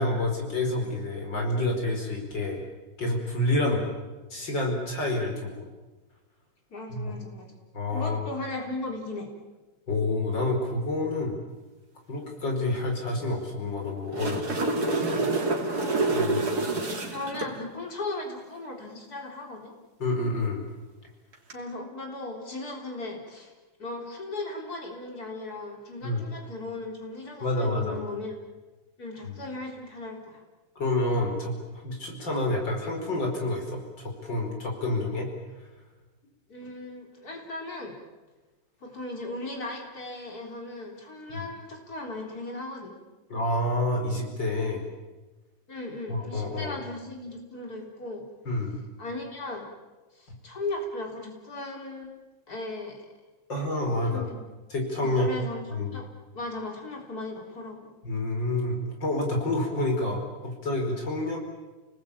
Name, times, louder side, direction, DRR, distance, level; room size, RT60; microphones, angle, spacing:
voice 1, 0.0-2.6 3.0-3.8 4.3-5.7 6.9-7.1 7.7-8.2 9.9-11.4 12.1-14.6 16.1-16.6 20.0-20.6 26.0-26.2 27.4-28.0 29.2-29.4 30.8-35.3 41.3-41.4 43.3-44.8 46.1-46.8 48.5-48.8 53.5-54.3 54.7-55.3 55.7-55.9 58.0-61.4, left 2 dB, 65° left, 2 dB, 5.6 m, -28 dB
voice 2, 6.7-7.5 7.9-9.3 17.1-19.7 21.5-23.5 23.8-28.3 29.0-30.4 36.5-38.0 38.8-43.0 45.7-48.2 49.0-49.7 50.1-52.2 52.5-53.0 54.0-54.5 55.0-56.1 56.3-57.9, left 2 dB, 50° left, 1 dB, 4.4 m, -37 dB
sound 1, 13.9-17.5 21.3-21.5, right 2 dB, 50° right, 3.4 m, -27 dB
29.5 x 20.0 x 8.8 m, 1.2 s
omnidirectional pair, 2.1 m